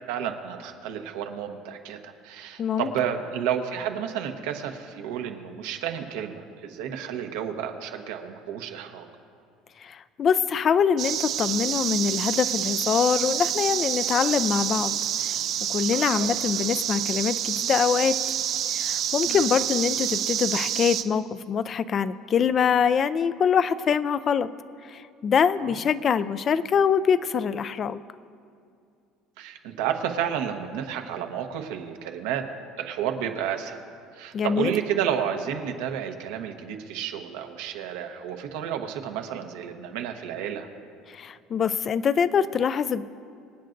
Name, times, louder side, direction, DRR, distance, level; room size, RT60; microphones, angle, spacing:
voice 1, 0.1-9.1 15.9-16.3 19.3-19.5 25.6-25.7 29.4-32.4 32.8-33.8 34.1-40.7, right 9 dB, 90° right, 4 dB, 1.1 m, -31 dB
voice 2, 2.6-2.9 9.8-15.4 15.7-18.2 18.7-24.5 24.8-28.0 34.3-34.7 41.1-43.0, left 7 dB, 35° left, 15 dB, 0.4 m, -24 dB
sound 1, 11.0-21.0, right 10 dB, 55° right, 0.6 m, -28 dB
25.5 x 9.0 x 2.6 m, 2.4 s
cardioid pair, 125°, 0 cm